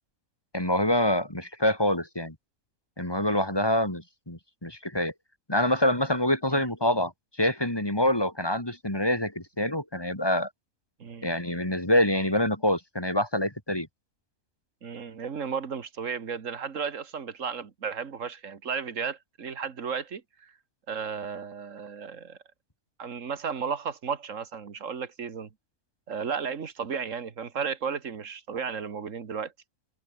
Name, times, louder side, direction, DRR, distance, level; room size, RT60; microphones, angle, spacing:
voice 1, 0.5-2.3 3.0-5.1 5.5-7.1 7.4-10.5 11.2-13.9, left 1 dB, 15° left, 2.9 m, -26 dB
voice 2, 11.0-11.3 14.8-20.5 20.9-22.4 23.0-25.5 26.1-29.5, right 6 dB, 60° right, 1.9 m, -34 dB
omnidirectional pair, 1.6 m